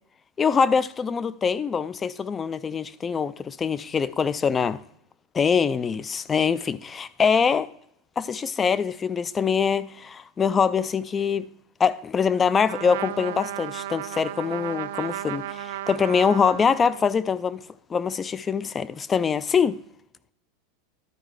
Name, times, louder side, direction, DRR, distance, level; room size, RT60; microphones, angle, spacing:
voice 1, 0.4-4.8 5.3-7.7 8.2-11.5 11.8-17.6 17.9-19.8, left 6 dB, 15° left, 0.3 m, -24 dB
Trumpet, 12.6-17.2, right 13 dB, 70° right, 0.4 m, -34 dB
12.0 x 4.4 x 4.8 m
supercardioid pair, 155°, 0 cm